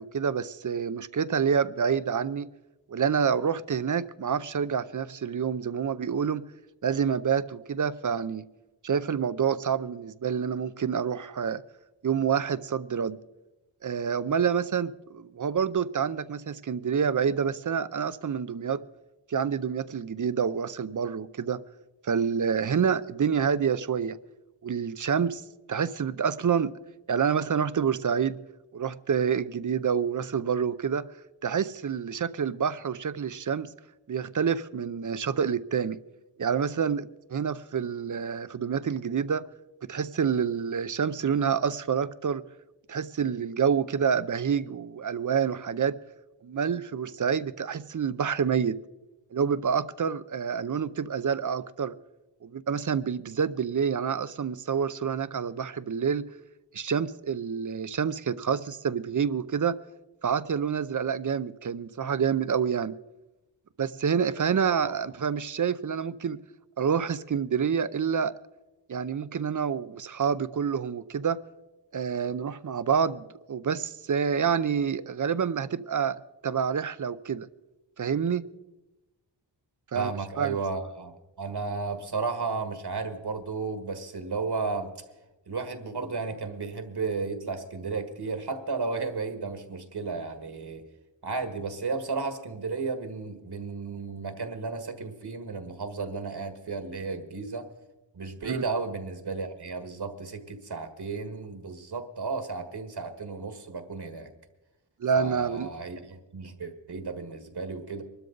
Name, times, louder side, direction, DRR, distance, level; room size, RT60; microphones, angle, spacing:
voice 1, 0.0-2.5 2.9-6.4 6.8-8.4 8.8-11.6 12.0-13.2 13.8-18.8 19.3-21.6 22.0-24.2 24.6-25.4 25.7-26.7 27.1-28.4 28.7-31.1 31.4-33.7 34.1-36.0 36.4-39.4 39.8-42.4 42.9-46.0 46.4-48.8 49.3-52.0 52.4-56.3 56.7-59.8 60.2-62.9 63.8-66.4 66.8-68.3 68.9-71.4 71.9-77.5 78.0-78.4 79.9-80.1 80.4-80.6 98.4-98.6 105.0-105.7, right 7 dB, 45° right, 0.5 m, -27 dB
voice 2, 64.6-65.0 79.9-84.9 85.5-90.9 91.2-97.7 98.1-104.3 105.1-108.0, right 4 dB, 60° right, 1.7 m, -33 dB
23.5 x 12.5 x 3.9 m
wide cardioid pair, 115°, 43 cm